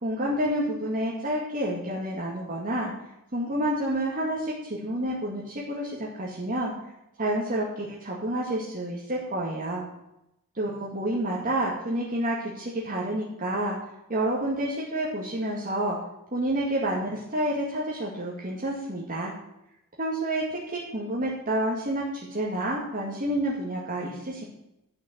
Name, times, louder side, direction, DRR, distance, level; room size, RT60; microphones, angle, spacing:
voice 1, 0.0-2.9 3.3-6.7 7.2-9.8 10.5-13.8 14.1-16.0 16.3-19.3 20.0-24.4, right 1 dB, 40° right, -4 dB, 2.2 m, -29 dB
12.5 x 6.3 x 8.2 m, 0.86 s
head